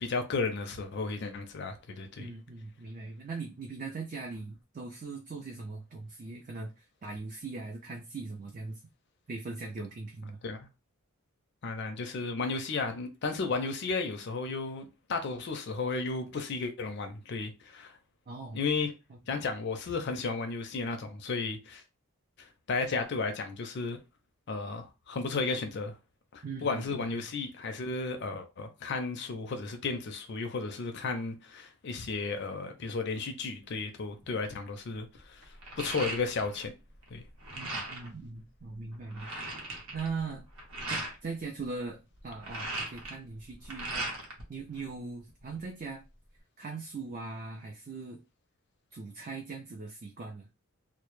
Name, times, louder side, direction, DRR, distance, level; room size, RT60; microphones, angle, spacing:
voice 1, 0.0-2.3 10.4-10.6 11.6-18.0 18.5-18.9 19.3-21.8 22.4-24.0 24.5-25.9 26.3-36.7 37.1-37.2, left 4 dB, 50° left, 0.4 m, -34 dB
voice 2, 2.2-8.8 9.3-10.4 18.3-18.6 19.1-19.2 26.4-27.3 37.5-39.3 39.9-40.5 40.9-42.0 42.2-44.1 44.5-46.0 46.6-48.2 48.9-50.5, right 4 dB, 35° right, 0.3 m, -40 dB
sound 1, 34.2-34.5 34.9-36.7 37.0-38.1 38.6-38.7 38.9-41.1 42.2-44.4 44.8-45.6, right 2 dB, 70° right, 0.7 m, -38 dB
2.0 x 2.0 x 3.0 m
head